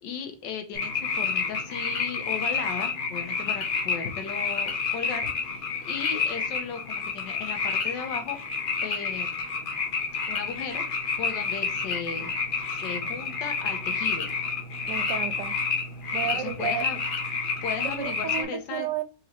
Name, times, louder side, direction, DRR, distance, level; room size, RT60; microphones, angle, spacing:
voice 1, 0.0-8.4 8.8-9.4 10.3-10.8 11.2-12.3 12.7-14.3 16.2-17.0 17.6-18.9, left 6 dB, 85° left, 1.5 m, -36 dB
sound 1, 0.7-18.4, left 5 dB, 55° left, 0.6 m, -29 dB
voice 2, 14.9-15.6 16.1-16.8 17.8-19.0, right 9 dB, 85° right, 1.2 m, -32 dB
4.3 x 3.8 x 3.0 m
omnidirectional pair, 1.9 m